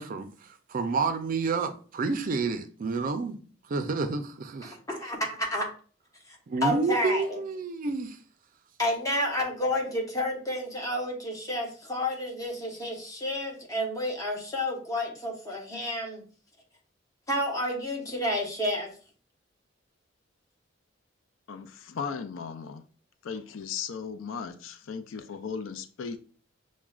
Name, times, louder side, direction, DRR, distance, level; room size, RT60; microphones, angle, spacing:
voice 1, 0.0-3.4 3.7-4.8 6.5-8.2, right 4 dB, 45° right, 0.4 m, -29 dB
voice 2, 4.6-5.7 6.3-6.4 6.6-7.4 8.8-16.2 17.3-18.9, left 1 dB, 20° left, 0.9 m, -30 dB
voice 3, 21.5-22.8 23.2-26.2, left 6 dB, 90° left, 0.4 m, -36 dB
5.9 x 2.1 x 2.3 m
head